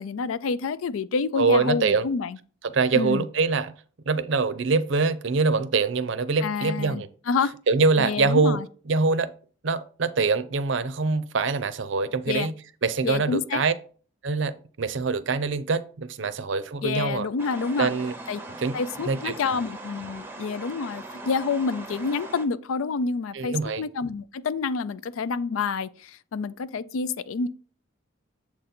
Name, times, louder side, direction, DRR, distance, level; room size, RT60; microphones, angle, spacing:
voice 1, 0.0-2.4 2.9-3.2 6.4-7.5 8.0-8.7 12.3-12.5 13.0-13.6 16.8-17.9 18.3-18.4 18.7-27.5, left 4 dB, 80° left, 0.4 m, -28 dB
voice 2, 1.4-2.0 2.6-3.7 4.1-7.1 7.7-8.6 8.9-9.3 9.6-12.5 12.8-13.7 14.2-17.3 17.8-18.1 18.6-18.8 19.0-19.4 23.3-23.8, right 4 dB, 65° right, 0.5 m, -24 dB
sound 1, 17.4-22.5, right 2 dB, 10° right, 0.7 m, -40 dB
7.3 x 3.9 x 4.3 m
head